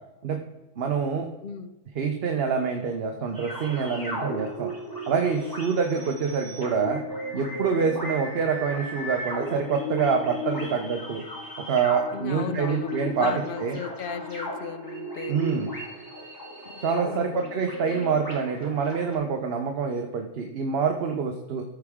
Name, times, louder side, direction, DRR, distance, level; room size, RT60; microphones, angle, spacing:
voice 1, 0.8-1.3 2.0-4.7 5.1-7.0 7.3-11.2 11.7-13.3 13.6-13.8 15.3-15.7 16.8-21.6, right 6 dB, 50° right, 4 dB, 0.9 m, -26 dB
voice 2, 1.4-1.7 12.1-12.9 13.2-15.4 16.7-17.6, left 7 dB, 65° left, 11 dB, 0.5 m, -36 dB
sound 1, 3.3-19.2, equal, 15° left, 2.1 m, -35 dB
14.0 x 4.7 x 3.6 m, 1.0 s
omnidirectional pair, 1.4 m